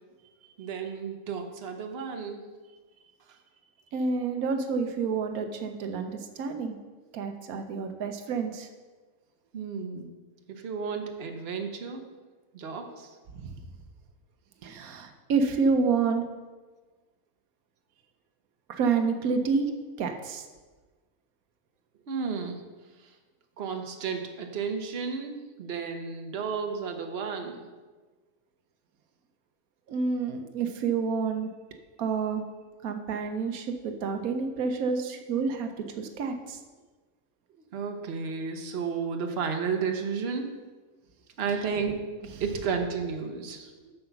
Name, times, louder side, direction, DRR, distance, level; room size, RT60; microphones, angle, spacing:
voice 1, 0.6-2.5 9.5-10.1 10.5-12.0 12.5-13.1 22.1-22.6 23.0-23.1 23.6-27.6 37.7-40.5 41.4-42.0 42.4-43.7, right 5 dB, 50° right, 4 dB, 1.1 m, -32 dB
voice 2, 3.9-6.8 7.1-8.7 13.4-13.5 14.6-16.2 18.7-19.7 20.0-20.4 29.9-31.5 32.0-32.4 32.8-35.7 36.0-36.6 43.8-43.9, right 5 dB, 90° right, 6 dB, 1.2 m, -28 dB
7.7 x 6.8 x 5.8 m, 1.3 s
omnidirectional pair, 1.5 m